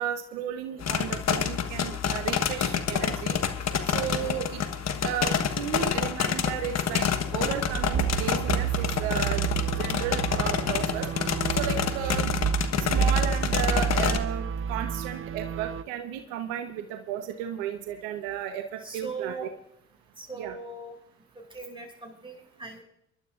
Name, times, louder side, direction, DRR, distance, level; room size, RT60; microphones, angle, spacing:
voice 1, 0.0-3.4 3.8-4.6 5.0-11.1 11.5-12.4 12.8-19.5 20.4-20.5, right 9 dB, 85° right, 6 dB, 1.2 m, -34 dB
sound 1, 0.8-14.2, left 7 dB, 45° left, 1.4 m, -28 dB
Zipper (clothing), 3.8-11.4 11.7-11.8, left 4 dB, 85° left, 3.9 m, -53 dB
sound 2, 7.4-15.8, right 8 dB, 35° right, 0.7 m, -29 dB
voice 2, 18.8-19.5 20.2-20.9 21.3-22.8, right 4 dB, 15° right, 0 dB, 6.6 m, -40 dB
24.5 x 12.5 x 2.6 m, 0.76 s
supercardioid pair, 65°, 36 cm